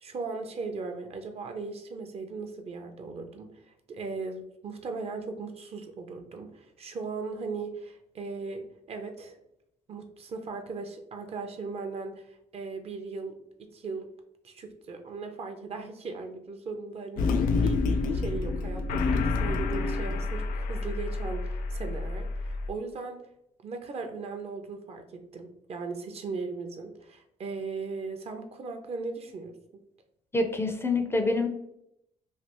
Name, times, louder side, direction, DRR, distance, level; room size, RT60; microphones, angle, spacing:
voice 1, 0.0-9.4 9.9-14.1 14.4-17.3 17.6-23.2 23.6-29.8, right 4 dB, 45° right, 6 dB, 0.5 m, -38 dB
sound 1, 17.2-22.7, left 3 dB, 80° left, 0.4 m, -28 dB
voice 2, 30.3-31.5, left 2 dB, 15° left, 5 dB, 0.4 m, -26 dB
3.2 x 2.3 x 2.9 m, 0.79 s
cardioid pair, 95°, 14 cm